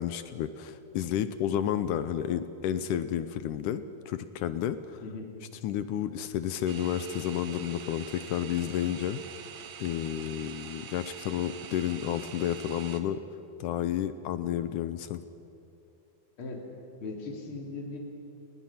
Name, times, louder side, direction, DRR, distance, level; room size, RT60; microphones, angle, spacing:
voice 1, 0.0-5.0 5.6-9.2 9.8-13.2 13.6-15.2, left 10 dB, 75° left, 12 dB, 2.0 m, -31 dB
sound 1, 6.7-13.0, right 8 dB, 60° right, 2.1 m, -45 dB
voice 2, 17.0-18.0, left 3 dB, 35° left, 0 dB, 3.8 m, -38 dB
29.5 x 20.0 x 5.9 m, 3.0 s
omnidirectional pair, 4.3 m